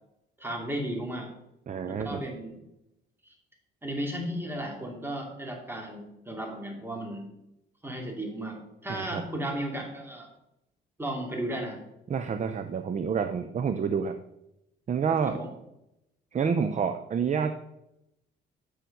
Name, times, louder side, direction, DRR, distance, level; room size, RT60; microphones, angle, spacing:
voice 1, 0.4-1.3 1.9-2.6 3.2-3.3 3.8-7.3 7.8-8.6 8.8-10.3 11.0-11.8 15.3-15.5, right 1 dB, 10° right, 1 dB, 2.6 m, -34 dB
voice 2, 1.7-2.2 8.9-9.2 12.1-14.2 14.9-15.4 16.3-17.7, right 6 dB, 35° right, 9 dB, 0.6 m, -28 dB
8.0 x 6.3 x 5.4 m, 0.86 s
cardioid pair, 90°, 20 cm